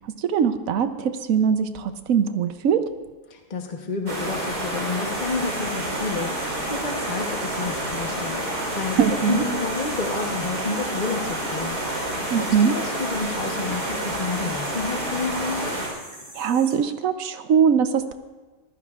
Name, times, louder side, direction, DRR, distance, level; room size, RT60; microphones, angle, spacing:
voice 1, 0.0-2.9 9.0-9.4 12.3-12.8 16.3-18.1, right 7 dB, 70° right, 9 dB, 0.8 m, -21 dB
voice 2, 3.3-8.4 8.7-9.0 9.3-15.8, left 4 dB, 35° left, 2 dB, 0.7 m, -30 dB
sound 1, 4.1-15.9, right 1 dB, 45° right, 4.4 m, -29 dB
sound 2, 5.1-16.8, equal, 20° right, 4.0 m, -43 dB
23.5 x 15.0 x 2.4 m, 1.3 s
omnidirectional pair, 2.2 m